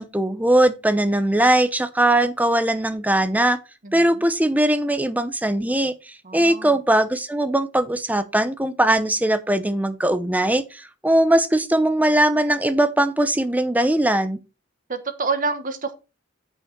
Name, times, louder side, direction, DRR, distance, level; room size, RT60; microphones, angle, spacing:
voice 1, 0.0-3.6 3.9-5.9 6.3-14.4, right 1 dB, 10° right, 0.8 m, -20 dB
voice 2, 3.8-4.3 6.2-6.8 14.9-15.9, right 4 dB, 45° right, 1.2 m, -28 dB
8.1 x 6.2 x 4.5 m
head